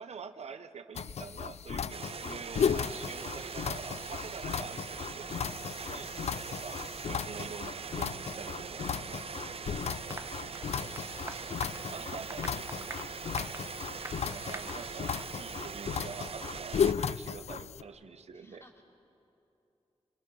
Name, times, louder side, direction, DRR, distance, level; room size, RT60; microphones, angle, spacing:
voice 1, 0.0-5.4 5.6-6.1 6.4-9.2 11.9-13.0 14.1-18.6, right 5 dB, 80° right, 9 dB, 0.9 m, -46 dB
sound 1, 1.0-17.8, left 7 dB, 80° left, 0.4 m, -35 dB
sound 2, 1.9-16.9, right 6 dB, 60° right, 0.6 m, -42 dB
Applause, 10.1-15.3 15.6-15.8 16.1-16.2 16.6-16.7, right 2 dB, 25° right, 1.3 m, -46 dB
voice 2, 10.2-11.8 18.3-18.8, left 1 dB, 25° left, 0 dB, 3.7 m, -60 dB
28.5 x 21.5 x 6.3 m, 2.8 s
wide cardioid pair, 75°, 11 cm